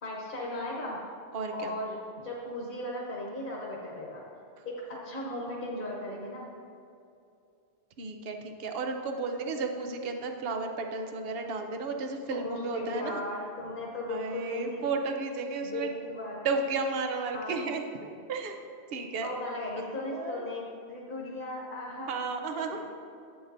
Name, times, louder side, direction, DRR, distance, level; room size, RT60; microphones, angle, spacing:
voice 1, 0.0-1.0 1.5-2.0 2.2-4.2 4.6-6.5 12.3-14.9 15.6-16.4 17.3-17.6 19.2-22.1 22.7-22.8, left 1 dB, 50° left, -4 dB, 1.3 m, -36 dB
voice 2, 1.3-1.7 8.0-13.2 14.1-15.9 16.4-18.6 18.9-19.3 19.8-20.5 22.1-22.8, right 4 dB, 65° right, 5 dB, 0.9 m, -33 dB
11.0 x 8.6 x 2.6 m, 2.5 s
omnidirectional pair, 1.1 m